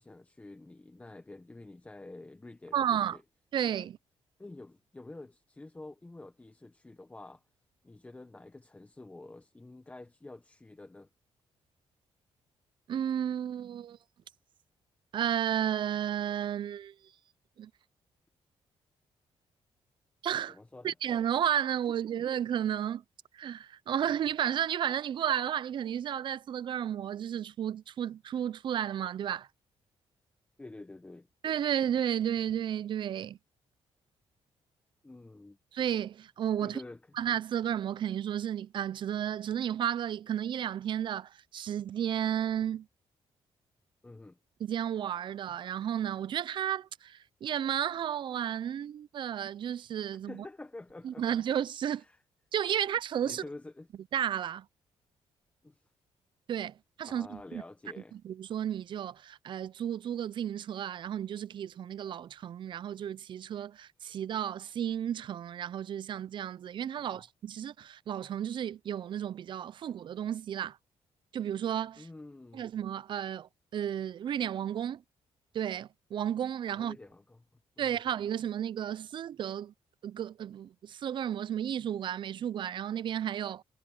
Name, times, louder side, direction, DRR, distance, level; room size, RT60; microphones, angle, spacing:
voice 1, 0.0-3.2 3.8-3.9 4.4-7.4 7.8-11.1 20.5-20.9 22.1-22.2 30.6-31.3 35.0-35.6 36.6-37.0 44.0-44.4 50.3-51.2 52.0-52.2 53.2-53.9 55.6-55.8 57.0-58.2 67.0-67.2 72.0-72.7 76.7-77.4 77.8-78.0, left 2 dB, 15° left, 0.9 m, -48 dB
voice 2, 2.7-3.2 3.5-4.0 12.9-14.0 15.1-16.9 17.6-17.7 20.2-20.6 20.8-23.0 23.3-29.5 31.4-33.4 35.7-36.8 37.2-42.9 44.6-50.4 51.0-52.0 52.5-53.4 54.1-54.7 56.5-57.6 58.1-70.8 71.3-72.1 72.5-75.0 75.5-77.0 77.8-79.7 80.0-83.6, right 9 dB, 50° right, 0.4 m, -33 dB
cardioid pair, 120°, 11 cm